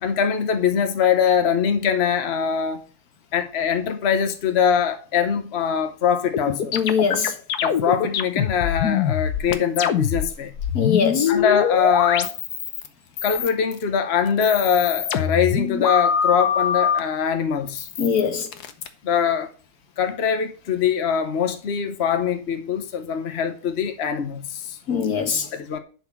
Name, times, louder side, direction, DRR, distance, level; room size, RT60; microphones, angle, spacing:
voice 1, 0.0-2.8 3.3-6.7 7.6-10.5 11.3-12.3 13.2-17.9 19.0-19.5 20.0-24.8 25.5-25.8, left 7 dB, 45° left, 1.2 m, -22 dB
sound 1, 6.3-12.9 13.2-13.8 14.3-17.0 17.7-18.9, left 8 dB, 90° left, 1.5 m, -23 dB
voice 2, 6.7-7.3 10.7-11.3 18.0-18.5 24.9-25.5, left 6 dB, 70° left, 1.7 m, -22 dB
11.0 x 4.3 x 5.9 m
omnidirectional pair, 1.6 m